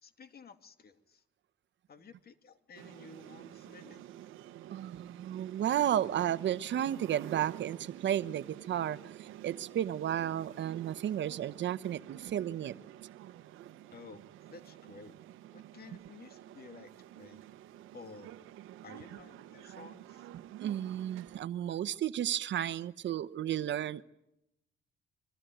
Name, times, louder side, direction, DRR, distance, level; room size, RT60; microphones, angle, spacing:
voice 1, 0.0-1.2 1.9-4.1 13.9-14.2 14.5-15.1 15.5-17.4 17.9-18.3 18.8-20.3, left 5 dB, 50° left, 9 dB, 2.6 m, -53 dB
sound 1, 2.7-21.4, right 13 dB, 90° right, 1.0 m, -49 dB
voice 2, 4.7-12.7 20.3-24.0, right 11 dB, 65° right, 15 dB, 1.0 m, -33 dB
25.5 x 23.5 x 9.2 m, 0.84 s
cardioid pair, 90°, 20 cm